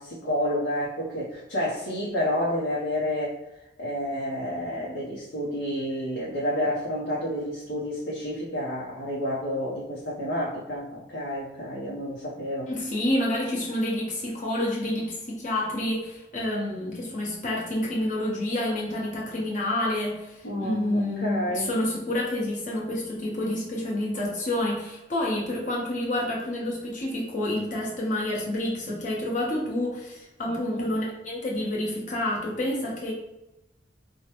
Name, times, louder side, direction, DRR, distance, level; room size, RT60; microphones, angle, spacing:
voice 1, 0.0-3.4 3.8-12.7 20.4-21.7 28.9-29.0 30.4-31.0, equal, 90° left, -6 dB, 0.7 m, -30 dB
voice 2, 12.7-33.1, left 1 dB, 45° left, -4 dB, 1.1 m, -28 dB
4.6 x 2.2 x 2.9 m, 0.92 s
head